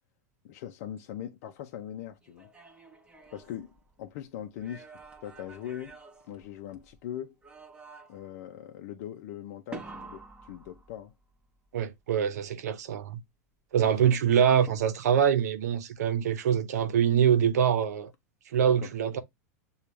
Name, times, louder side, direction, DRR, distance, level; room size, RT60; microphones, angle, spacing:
voice 1, 0.4-2.5 3.3-4.9 5.2-6.0 6.3-7.4 8.1-11.1 13.7-14.1 18.6-18.9, left 11 dB, 60° left, 0.6 m, -41 dB
sound 1, 2.2-4.1 4.6-7.0 7.4-8.4 9.7-11.3 14.7-15.3, right 4 dB, 10° right, 1.0 m, -49 dB
voice 2, 11.7-13.2 13.7-18.1 18.5-19.2, right 8 dB, 80° right, 0.8 m, -24 dB
6.7 x 2.4 x 3.1 m
hypercardioid pair, 115°, 9 cm